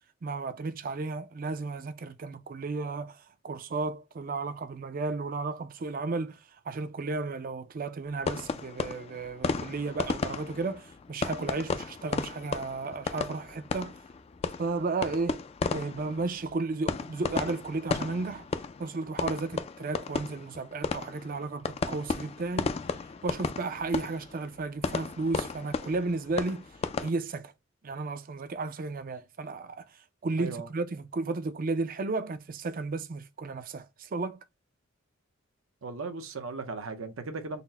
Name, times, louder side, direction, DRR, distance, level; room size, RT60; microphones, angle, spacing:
voice 1, 0.2-6.4 6.7-14.0 14.6-15.4 15.7-18.5 18.8-22.7 23.2-26.7 27.0-27.5 27.8-29.8 30.2-34.4, right 3 dB, 45° right, 0.4 m, -33 dB
sound 1, 8.2-27.1, left 4 dB, 30° left, 0.3 m, -34 dB
voice 2, 35.8-37.6, right 4 dB, 80° right, 0.7 m, -37 dB
4.1 x 2.1 x 4.0 m
head